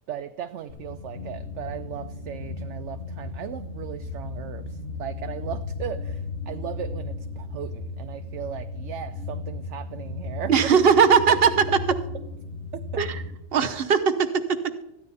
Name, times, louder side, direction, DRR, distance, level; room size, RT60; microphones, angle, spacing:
voice 1, 0.1-10.5 12.7-13.1, right 9 dB, 70° right, 9 dB, 0.9 m, -37 dB
sound 1, 0.7-13.3, left 3 dB, 60° left, 1.7 m, -35 dB
voice 2, 10.5-11.5 13.0-13.2 13.5-14.8, right 6 dB, 50° right, 9 dB, 1.1 m, -19 dB
14.0 x 10.0 x 4.1 m, 0.86 s
omnidirectional pair, 1.4 m